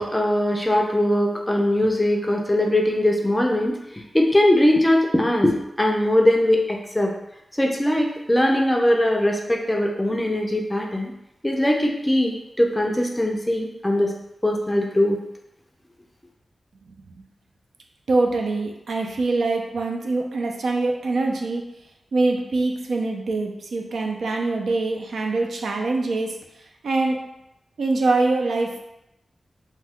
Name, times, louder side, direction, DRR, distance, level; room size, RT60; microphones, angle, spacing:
voice 1, 0.0-7.1 7.6-11.1 11.4-14.1 14.4-15.2, left 1 dB, 10° left, 0 dB, 0.4 m, -21 dB
voice 2, 18.1-21.6 22.1-26.4 26.8-27.2 27.8-28.8, right 3 dB, 90° right, 2 dB, 0.4 m, -24 dB
2.7 x 2.2 x 3.5 m, 0.87 s
wide cardioid pair, 135°, 0 cm